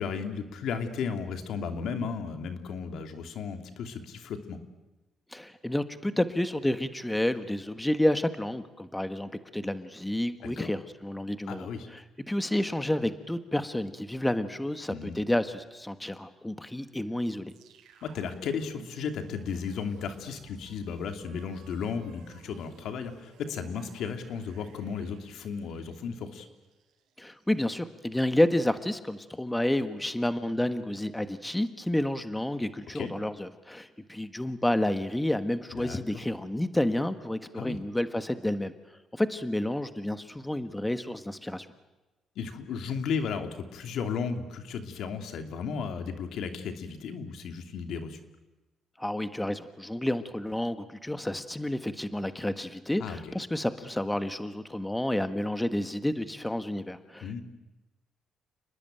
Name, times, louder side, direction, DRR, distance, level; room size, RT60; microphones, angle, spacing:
voice 1, 0.0-4.6 10.4-10.7 11.5-11.9 14.9-15.2 18.0-26.5 32.9-33.1 35.7-36.0 37.5-37.8 42.4-48.2 53.0-53.3 57.2-57.4, left 6 dB, 75° left, 6 dB, 2.7 m, -34 dB
voice 2, 5.3-17.5 27.2-38.7 39.1-41.7 49.0-57.4, left 1 dB, 10° left, 10 dB, 1.5 m, -30 dB
sound 1, 17.5-27.7, right 7 dB, 90° right, 4.8 m, -55 dB
29.5 x 20.5 x 9.1 m, 1.1 s
cardioid pair, 90°, 0 cm